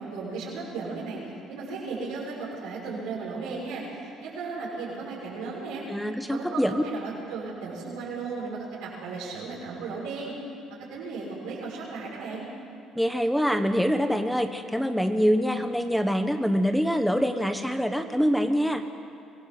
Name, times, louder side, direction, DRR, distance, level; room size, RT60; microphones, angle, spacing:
voice 1, 0.0-5.8 6.3-10.3 10.9-12.5, right 4 dB, 85° right, -8 dB, 6.6 m, -35 dB
voice 2, 5.9-6.8 12.9-18.8, equal, ahead, 7 dB, 1.3 m, -25 dB
25.0 x 16.5 x 7.9 m, 2.6 s
supercardioid pair, 90°, 0 cm